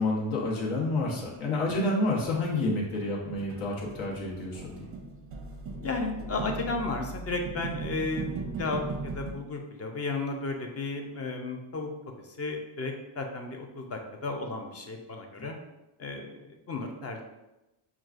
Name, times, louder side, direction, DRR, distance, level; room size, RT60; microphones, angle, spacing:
voice 1, 0.0-4.9, left 2 dB, 75° left, -3 dB, 1.2 m, -29 dB
sound 1, 0.8-2.6 2.9-9.3, right 3 dB, 30° right, 0.5 m, -39 dB
voice 2, 5.8-11.9 12.2-15.6 16.0-17.2, left 3 dB, 30° left, 3 dB, 0.5 m, -34 dB
5.8 x 2.3 x 2.4 m, 0.97 s
cardioid pair, 120°, 48 cm